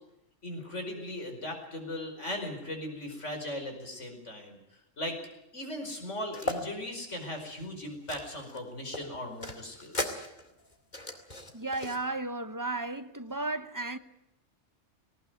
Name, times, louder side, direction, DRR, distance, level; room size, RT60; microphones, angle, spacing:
voice 1, 0.4-4.6 5.0-5.2 5.5-10.2, left 1 dB, 75° left, 5.3 m, -38 dB
sound 1, 6.3-6.6 7.1-8.6 8.9-12.0, left 1 dB, 35° left, 2.5 m, -37 dB
voice 2, 11.5-14.0, right 2 dB, 20° right, 0.9 m, -34 dB
19.0 x 19.0 x 9.3 m
omnidirectional pair, 1.3 m